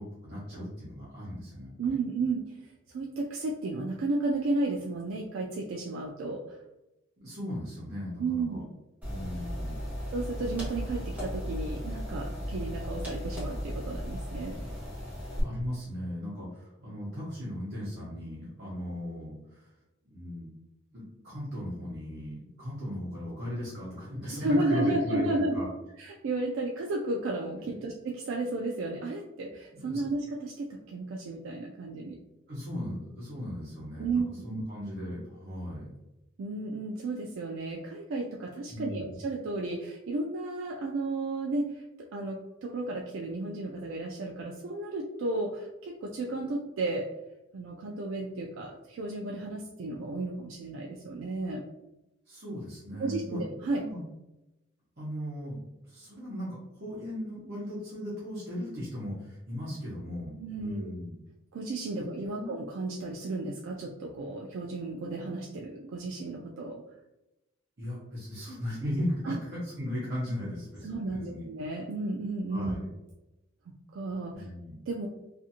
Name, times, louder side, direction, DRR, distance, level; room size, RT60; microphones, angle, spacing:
voice 1, 0.0-1.9 7.2-8.6 9.1-9.8 15.4-19.7 20.0-20.5 20.9-25.7 27.6-27.8 29.7-30.0 32.5-35.9 38.7-39.1 52.3-53.5 53.7-54.0 55.0-55.6 55.8-61.1 61.9-62.1 62.4-62.6 67.8-71.4 72.5-72.9 74.3-74.8, equal, 50° right, -9 dB, 0.9 m, -37 dB
voice 2, 1.8-2.6 2.9-6.6 8.2-8.6 10.1-14.6 24.4-25.6 26.0-32.2 34.0-34.6 36.4-47.1 47.5-51.6 53.0-53.9 60.4-60.9 61.5-66.8 69.3-69.4 70.8-72.8 73.9-74.4 74.9-75.1, right 2 dB, 80° right, 0 dB, 0.3 m, -33 dB
sound 1, 9.0-15.4, equal, 10° right, 1.0 m, -36 dB
2.5 x 2.5 x 2.7 m, 0.95 s
head